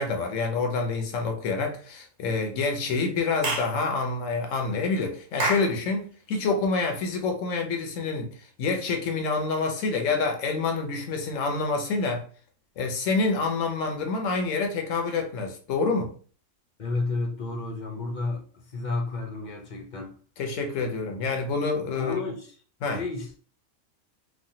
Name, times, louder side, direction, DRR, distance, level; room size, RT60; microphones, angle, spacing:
voice 1, 0.0-12.2 12.8-16.1 20.4-22.3 22.8-23.0, left 4 dB, 85° left, 1.1 m, -27 dB
Clapping / Chirp tweet, 3.4-3.8 5.4-5.7, right 2 dB, 85° right, 1.2 m, -27 dB
voice 2, 16.8-18.4 18.7-20.1 22.0-22.5 22.9-23.3, left 3 dB, 50° left, 0.6 m, -31 dB
3.1 x 2.2 x 2.7 m
omnidirectional pair, 1.3 m